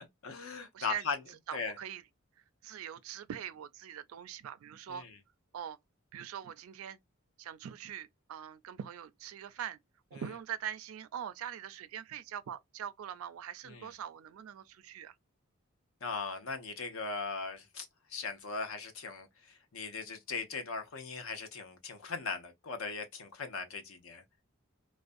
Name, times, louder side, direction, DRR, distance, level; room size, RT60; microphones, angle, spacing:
voice 1, 0.2-1.2 1.5-1.7 4.9-5.2 10.1-10.2 13.6-13.9 16.0-24.2, left 4 dB, 70° left, 0.6 m, -39 dB
voice 2, 0.7-1.0 1.5-2.0 2.6-5.0 5.5-5.8 6.1-7.0 7.4-9.8 10.1-15.2, right 9 dB, 80° right, 0.4 m, -42 dB
2.5 x 2.1 x 2.5 m
head